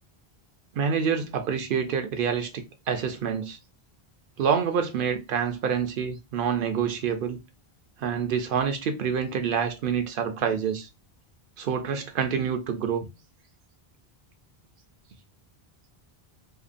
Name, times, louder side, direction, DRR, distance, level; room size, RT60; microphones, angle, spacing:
voice 1, 0.7-3.6 4.4-7.4 8.0-10.9 11.6-13.1, right 7 dB, 65° right, 0.7 m, -27 dB
2.8 x 2.2 x 2.4 m
omnidirectional pair, 1.0 m